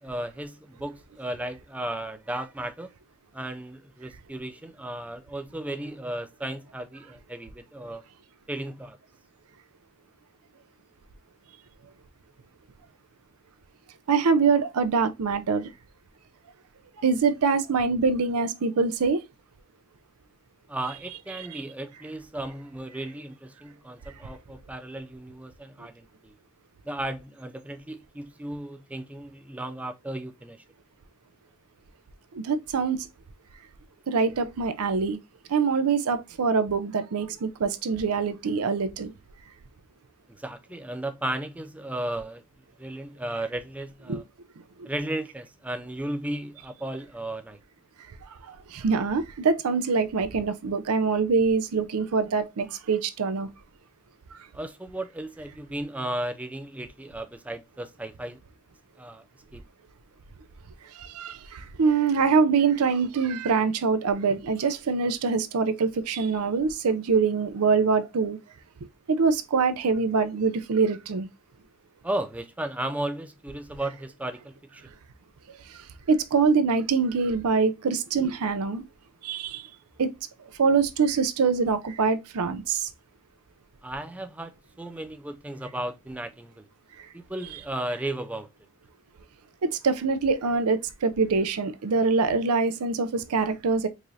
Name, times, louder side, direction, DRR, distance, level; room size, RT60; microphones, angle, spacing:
voice 1, 0.0-2.9 3.3-8.0 8.5-9.0 20.7-26.3 26.8-30.6 40.4-42.4 42.8-44.2 44.8-47.6 54.5-58.4 59.0-59.2 59.5-59.6 72.0-74.9 83.8-86.7 87.1-88.5, right 1 dB, 5° right, 0.3 m, -35 dB
voice 2, 14.1-15.7 17.0-19.2 21.4-21.5 32.3-33.1 34.1-35.2 35.5-39.1 44.1-44.2 44.8-44.9 48.3-53.5 54.3-54.4 60.9-68.4 69.1-71.3 75.5-78.8 79.2-79.7 80.0-80.1 80.6-82.9 87.0-87.1 89.6-93.9, right 5 dB, 70° right, 0.5 m, -24 dB
4.8 x 2.5 x 2.6 m
head